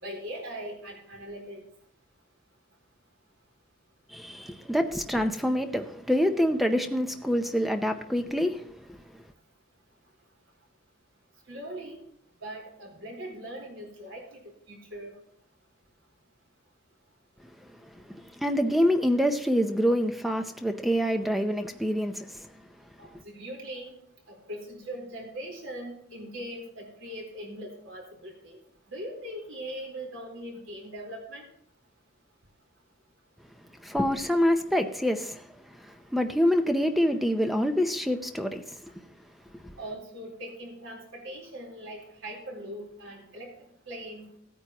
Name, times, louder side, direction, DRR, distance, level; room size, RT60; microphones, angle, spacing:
voice 1, 0.0-1.6 11.5-12.0 12.4-14.4 14.7-15.1 23.0-23.9 24.3-28.6 28.9-31.5 39.8-43.5 43.9-44.3, right 1 dB, 70° right, 4.0 m, -40 dB
voice 2, 4.1-8.9 17.8-22.5 23.1-23.2 33.8-38.8 39.6-39.8, equal, ahead, 0.6 m, -26 dB
16.5 x 9.2 x 2.9 m
head